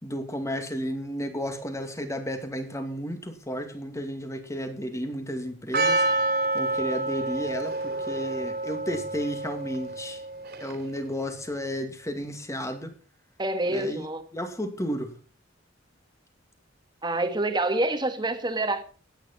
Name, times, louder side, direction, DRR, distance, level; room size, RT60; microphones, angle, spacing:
voice 1, 0.0-6.0 6.5-10.2 10.6-12.9 13.7-14.0 14.3-15.1, equal, 15° left, 2.4 m, -33 dB
Percussion, 5.7-11.0, right 2 dB, 55° right, 2.8 m, -28 dB
voice 2, 13.4-14.2 17.0-18.8, right 2 dB, 25° right, 1.8 m, -27 dB
16.5 x 9.7 x 4.3 m
head